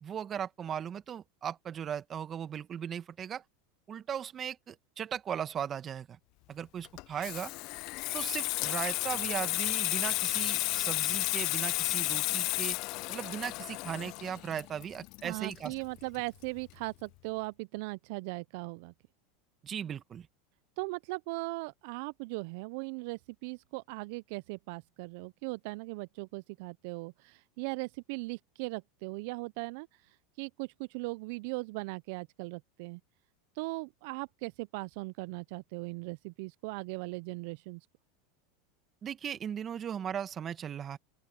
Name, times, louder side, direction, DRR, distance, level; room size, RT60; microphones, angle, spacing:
voice 1, 0.0-3.4 3.9-6.2 6.5-7.5 8.1-12.8 13.1-15.7 19.6-20.3 39.0-41.0, right 8 dB, 35° right, 1.6 m, -37 dB
Water tap faucet / Sink (filling or washing), 6.8-16.2 16.4-16.7, left 23 dB, 55° left, 0.4 m, -32 dB
voice 2, 15.2-18.9 20.8-33.0 33.5-37.9, right 26 dB, 65° right, 0.4 m, -39 dB
open air
hypercardioid pair, 100°, 0 cm